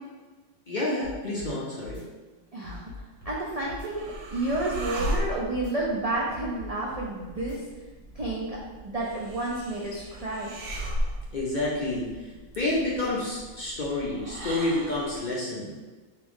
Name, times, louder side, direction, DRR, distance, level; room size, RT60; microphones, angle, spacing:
voice 1, 0.7-2.0 11.3-12.1 12.6-15.8, left 2 dB, 50° left, -5 dB, 0.6 m, -29 dB
sound 1, 1.0-1.5 1.8-2.0 2.6-3.4 3.7-3.9 4.5-5.2 5.5-5.7 6.3-7.1 7.4-7.6 8.2-8.3, left 4 dB, 25° left, 1.1 m, -42 dB
voice 2, 2.5-2.8 3.2-7.6 8.1-10.5, right 2 dB, 65° right, -4 dB, 0.3 m, -30 dB
sound 2, 3.2-15.3, equal, 80° right, 1.1 m, -37 dB
3.5 x 3.2 x 3.5 m, 1.3 s
omnidirectional pair, 1.4 m